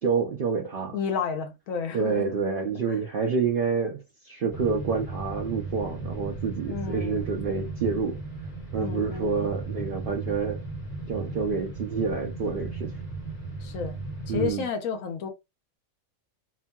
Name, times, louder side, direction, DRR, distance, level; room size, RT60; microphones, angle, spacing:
voice 1, 0.0-1.0 1.9-8.2 8.7-10.6 11.1-12.9 14.3-14.7, right 5 dB, 70° right, 0.5 m, -28 dB
voice 2, 0.9-2.3 2.9-3.0 6.7-7.3 8.8-9.4 13.6-14.0 14.3-15.3, left 6 dB, 75° left, 1.1 m, -31 dB
sound 1, 4.5-14.5, right 3 dB, 30° left, 1.6 m, -36 dB
2.9 x 2.6 x 2.2 m
omnidirectional pair, 1.4 m